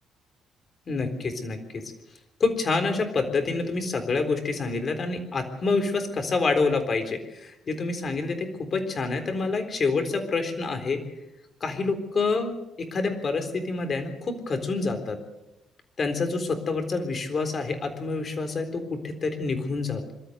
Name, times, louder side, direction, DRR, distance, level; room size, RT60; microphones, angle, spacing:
voice 1, 0.9-1.8 2.4-11.0 11.6-15.2 16.0-20.1, left 3 dB, 35° left, 6 dB, 3.8 m, -27 dB
25.5 x 13.5 x 7.9 m, 0.93 s
cardioid pair, 140°, 0 cm